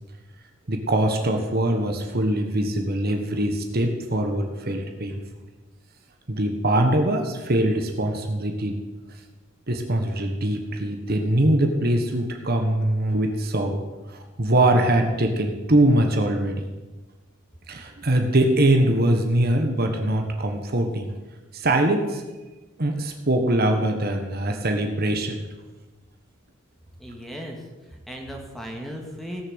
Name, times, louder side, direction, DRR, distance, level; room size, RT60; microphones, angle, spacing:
voice 1, 0.7-5.1 6.3-8.8 9.7-16.7 17.7-21.1 21.5-22.2 22.8-25.5, right 1 dB, 50° right, 4 dB, 1.4 m, -22 dB
voice 2, 27.0-29.4, equal, ahead, 1 dB, 2.1 m, -37 dB
17.5 x 6.8 x 8.1 m, 1.2 s
head